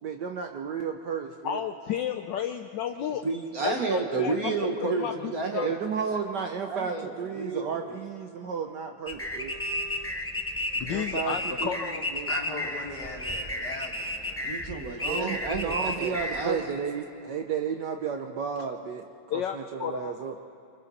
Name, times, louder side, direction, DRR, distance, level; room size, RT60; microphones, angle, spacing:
voice 1, 0.0-1.6 5.6-9.6 10.8-11.3 11.6-12.3 15.0-19.1 19.3-20.3, right 6 dB, 65° right, 5 dB, 1.2 m, -33 dB
voice 2, 1.4-3.2 3.6-4.5 5.0-5.7 10.8-12.1 19.3-20.1, left 9 dB, 70° left, 6 dB, 1.1 m, -32 dB
voice 3, 3.2-5.7 6.1-6.2 6.7-8.0 14.4-16.6, right 3 dB, 45° right, 2 dB, 1.6 m, -31 dB
sound 1, 9.1-16.5, left 1 dB, 20° left, 0.4 m, -32 dB
voice 4, 12.3-14.4, left 2 dB, 50° left, -1 dB, 2.9 m, -37 dB
28.0 x 25.0 x 4.2 m, 2.7 s
omnidirectional pair, 2.4 m